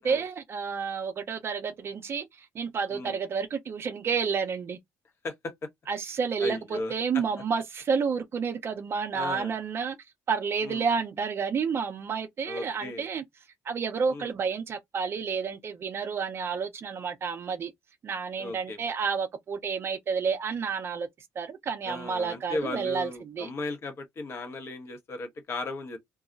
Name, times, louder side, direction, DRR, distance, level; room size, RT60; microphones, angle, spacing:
voice 1, 0.0-4.8 5.9-10.0 10.3-13.2 13.7-17.7 18.0-21.1 21.4-23.5, right 5 dB, 40° right, 0.4 m, -30 dB
voice 2, 5.2-5.7 6.4-7.2 9.1-9.6 10.6-10.9 12.5-13.1 14.1-14.3 18.4-18.8 21.9-26.0, left 2 dB, 40° left, 0.9 m, -36 dB
2.3 x 2.1 x 3.7 m
cardioid pair, 145°, 7 cm